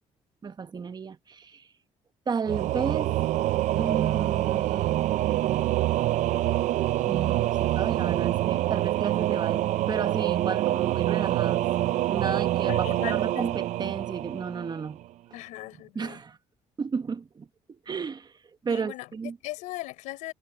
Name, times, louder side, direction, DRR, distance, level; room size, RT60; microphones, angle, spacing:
voice 1, 0.4-1.7 2.3-3.2 3.7-5.1 7.0-11.7 12.1-15.0 15.9-16.4 16.8-18.3 18.6-19.4, right 5 dB, 35° right, 1.3 m, -33 dB
Singing / Musical instrument, 2.5-15.0, right 14 dB, 75° right, 0.7 m, -26 dB
voice 2, 12.7-13.5 15.3-16.2 18.7-19.1 19.4-20.3, left 18 dB, 90° left, 5.0 m, -38 dB
cardioid pair, 85°, 12 cm